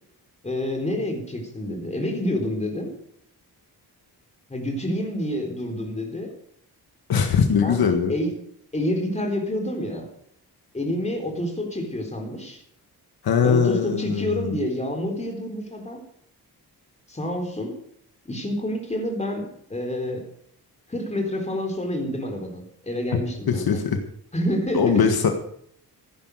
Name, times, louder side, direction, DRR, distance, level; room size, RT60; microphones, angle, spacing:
voice 1, 0.4-2.9 4.5-6.3 7.6-8.4 8.7-10.1 10.7-12.6 13.4-16.0 17.1-17.8 18.2-20.3 20.9-23.6 24.3-25.0, left 1 dB, 15° left, 3 dB, 3.7 m, -28 dB
voice 2, 7.1-8.2 13.2-14.6 23.5-24.0 24.7-25.3, left 6 dB, 70° left, 5 dB, 1.6 m, -21 dB
15.5 x 10.5 x 6.4 m, 0.65 s
wide cardioid pair, 140°, 38 cm